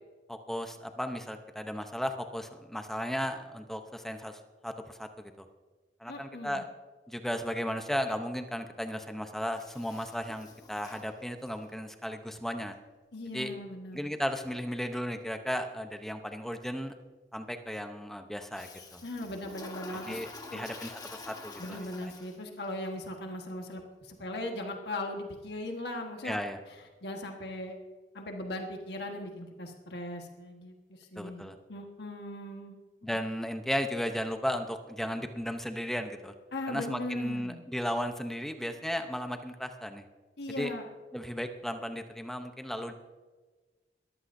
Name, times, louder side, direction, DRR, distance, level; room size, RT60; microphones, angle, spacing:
voice 1, 0.3-5.3 6.0-6.6 7.1-12.8 13.3-13.5 13.9-16.9 17.3-19.0 20.1-22.1 26.2-26.6 31.2-31.6 33.0-36.3 36.7-40.0 40.6-40.7 41.1-42.9, equal, ahead, 6 dB, 0.7 m, -35 dB
voice 2, 6.1-6.6 13.1-14.0 19.0-20.2 20.5-20.6 21.6-26.4 27.0-27.8 28.1-33.2 36.5-37.6 40.4-40.9, left 1 dB, 70° left, 2 dB, 1.4 m, -39 dB
Toilet flush, 9.5-11.8 18.5-22.7, left 3 dB, 20° left, 1.2 m, -47 dB
21.5 x 14.0 x 2.6 m, 1.3 s
head